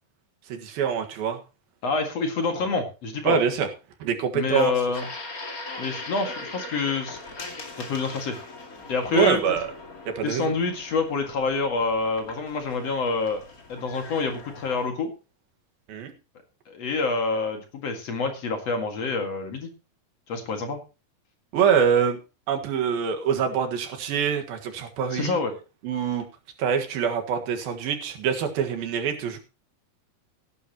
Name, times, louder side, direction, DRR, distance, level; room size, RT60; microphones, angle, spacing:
voice 1, 0.5-1.4 3.3-3.7 4.0-4.7 9.1-9.7 10.1-10.5 15.9-16.1 21.5-22.2 22.5-25.4 25.8-26.3 26.6-29.4, right 7 dB, 90° right, 5 dB, 3.5 m, -25 dB
voice 2, 1.8-3.4 4.3-5.1 5.8-7.2 7.8-8.4 8.9-9.4 10.2-13.4 13.7-15.1 16.7-19.7 20.3-20.8 25.1-25.5, left 4 dB, 50° left, 4 dB, 2.8 m, -27 dB
sound 1, 4.9-14.9, left 2 dB, 30° left, 2.2 m, -40 dB
17.0 x 10.5 x 3.0 m, 0.31 s
omnidirectional pair, 4.0 m